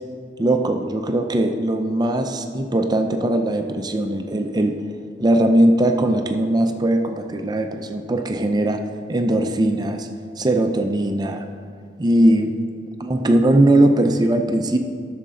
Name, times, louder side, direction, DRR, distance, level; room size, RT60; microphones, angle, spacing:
voice 1, 0.4-4.8 5.2-8.8 9.1-10.1 10.4-11.4 12.0-12.5 13.0-14.8, right 1 dB, 25° right, 5 dB, 0.4 m, -19 dB
12.5 x 6.6 x 3.7 m, 2.1 s
head